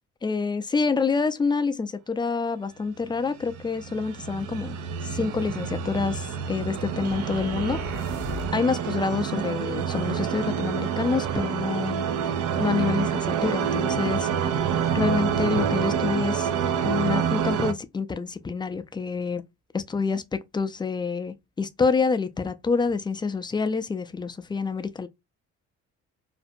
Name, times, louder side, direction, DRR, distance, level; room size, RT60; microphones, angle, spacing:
voice 1, 0.2-4.8 5.0-8.2 8.5-12.1 12.6-16.5 16.8-19.4 19.7-25.1, left 4 dB, 15° left, 0.3 m, -27 dB
sound 1, 3.4-17.7, right 8 dB, 75° right, 0.5 m, -27 dB
sound 2, 7.0-8.7, left 3 dB, 55° right, 0.9 m, -38 dB
2.5 x 2.1 x 2.6 m
cardioid pair, 90°, 30 cm